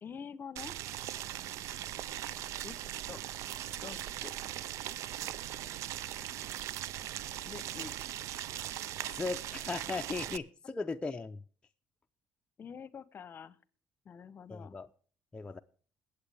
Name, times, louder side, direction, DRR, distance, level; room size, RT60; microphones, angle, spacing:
voice 1, 0.0-0.8 2.6-2.8 3.1-3.2 3.8-4.3 7.5-8.0 12.6-13.6 14.0-14.8, left 6 dB, 45° left, 19 dB, 0.9 m, -46 dB
Boiling, 0.6-10.4, right 12 dB, 75° right, 0.4 m, -40 dB
voice 2, 9.0-11.4 14.5-14.9 15.3-15.6, left 3 dB, 20° left, 5 dB, 0.6 m, -37 dB
21.5 x 8.1 x 3.4 m, 0.43 s
supercardioid pair, 85°, 5 cm